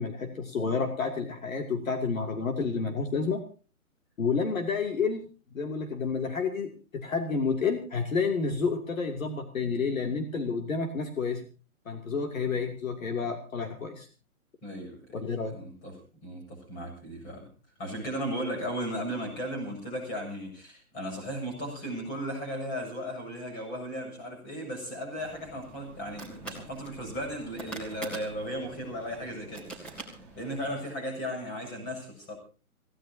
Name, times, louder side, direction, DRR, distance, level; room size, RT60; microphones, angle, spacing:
voice 1, 0.0-3.4 4.2-5.2 5.5-11.4 11.9-14.1 15.1-15.5, left 5 dB, 65° left, 4 dB, 2.8 m, -30 dB
voice 2, 14.6-15.9 16.2-17.5 17.8-32.3, equal, 20° left, 2 dB, 7.5 m, -36 dB
sound 1, 25.2-30.7, right 3 dB, 5° left, 2.9 m, -44 dB
26.5 x 17.0 x 2.8 m, 0.35 s
hypercardioid pair, 160°, 44 cm